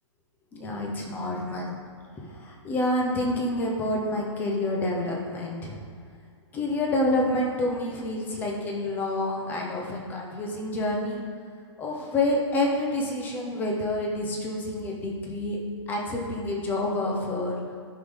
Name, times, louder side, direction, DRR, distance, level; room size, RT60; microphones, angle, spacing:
voice 1, 0.5-1.8 2.1-5.8 6.5-11.2 11.8-15.6 15.9-17.6, left 1 dB, 10° left, -1 dB, 0.9 m, -28 dB
11.5 x 5.4 x 3.9 m, 2.1 s
hypercardioid pair, 170°, 16 cm